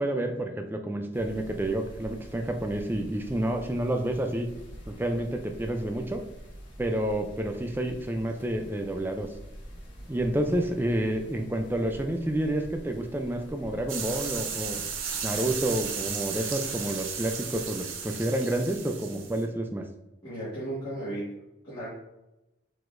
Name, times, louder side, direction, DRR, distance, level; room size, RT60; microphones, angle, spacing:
voice 1, 0.0-4.5 4.9-6.2 6.8-9.3 10.1-14.8 15.2-19.9, right 1 dB, 10° right, 5 dB, 0.3 m, -29 dB
sound 1, 1.1-15.6, equal, 65° left, 1.4 m, -46 dB
sound 2, 13.9-19.4, right 6 dB, 85° right, 0.6 m, -34 dB
voice 2, 20.2-21.3 21.6-21.9, right 1 dB, 20° left, -13 dB, 1.5 m, -34 dB
4.6 x 4.0 x 2.5 m, 0.96 s
head